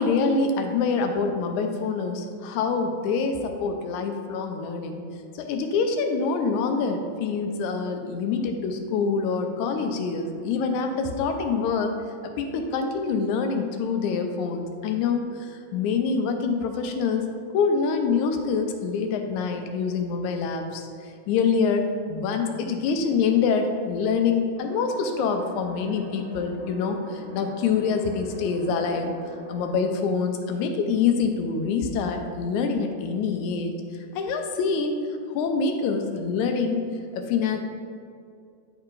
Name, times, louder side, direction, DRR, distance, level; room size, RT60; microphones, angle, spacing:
voice 1, 0.0-5.0 5.4-12.0 12.4-17.3 17.5-29.1 29.5-33.7 34.1-35.0 35.3-36.8 37.1-37.6, left 5 dB, 80° left, 5 dB, 2.0 m, -25 dB
sound 1, 24.6-29.7, equal, 40° right, 1.1 m, -44 dB
10.0 x 4.6 x 2.5 m, 2.3 s
omnidirectional pair, 3.5 m